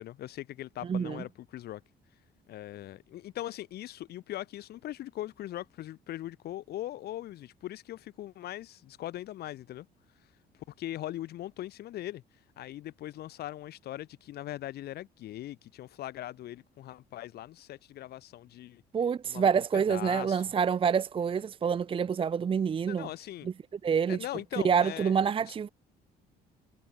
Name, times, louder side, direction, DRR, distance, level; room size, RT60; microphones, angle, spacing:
voice 1, 0.0-1.8 2.5-9.9 10.8-12.2 12.6-18.8 19.2-19.5 19.9-20.4 22.9-23.5 24.1-25.1 25.4-25.5, left 14 dB, 70° left, 4.7 m, -40 dB
voice 2, 0.9-1.2 18.9-23.1 23.8-24.2 24.6-25.7, right 7 dB, 30° right, 0.7 m, -27 dB
cardioid pair, 110°, 17 cm